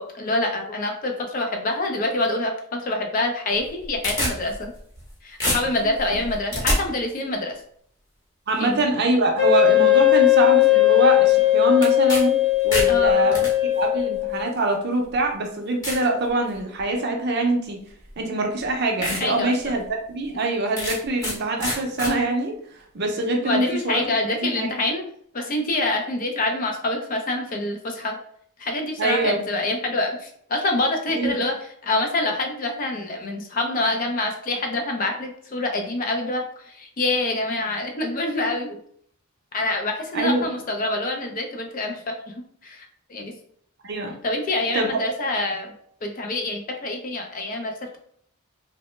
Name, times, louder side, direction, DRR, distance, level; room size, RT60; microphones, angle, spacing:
voice 1, 0.0-4.7 5.2-7.6 8.6-8.9 12.9-13.4 19.2-19.7 23.4-25.0 25.3-28.2 28.6-31.5 31.8-38.8 39.5-42.8 43.1-43.3 44.2-45.7 46.0-48.0, left 2 dB, 40° left, 3 dB, 0.4 m, -26 dB
sound 1, 3.6-5.1 5.4-6.8 11.8-12.2 12.5-13.5 14.4-14.5 15.1-15.2 15.8-16.1 16.6-16.9 18.1-18.2 18.6-18.7 19.0-19.2 19.7-19.8 20.8-21.4 21.6-22.1, left 1 dB, 15° left, 0.9 m, -26 dB
voice 2, 8.5-12.3 12.6-13.4 13.7-17.8 18.2-22.5 22.9-24.0 24.3-24.7 29.0-29.4 31.2-31.4 40.1-40.4 43.8-44.1 44.7-44.9, right 2 dB, 50° right, 2 dB, 0.5 m, -24 dB
Wind instrument woodwind instrument, 9.4-14.4, left 15 dB, 85° left, 1.0 m, -18 dB
3.0 x 2.1 x 3.0 m, 0.65 s
head